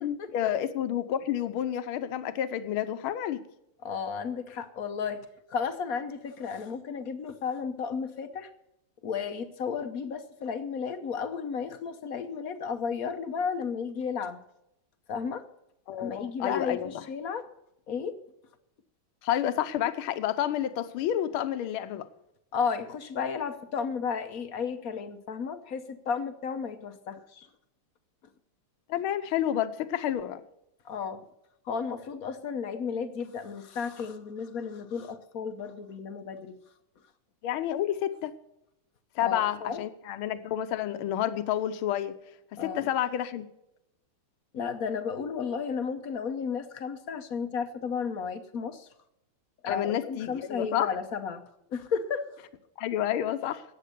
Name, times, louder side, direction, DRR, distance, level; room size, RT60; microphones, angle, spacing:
voice 1, 0.0-3.4 15.9-17.0 19.2-22.1 28.9-30.4 37.4-38.3 39.2-42.1 42.6-43.4 49.7-50.9 52.8-53.6, left 11 dB, 75° left, 12 dB, 1.6 m, -29 dB
voice 2, 3.8-8.5 9.0-14.4 15.1-15.5 16.0-17.5 17.9-18.2 22.5-27.5 30.8-31.2 31.7-36.6 39.2-39.8 42.6-42.9 44.5-48.9 49.6-51.4 51.7-52.3, left 6 dB, 60° left, 10 dB, 1.0 m, -33 dB
14.5 x 9.3 x 6.7 m, 0.84 s
omnidirectional pair, 2.4 m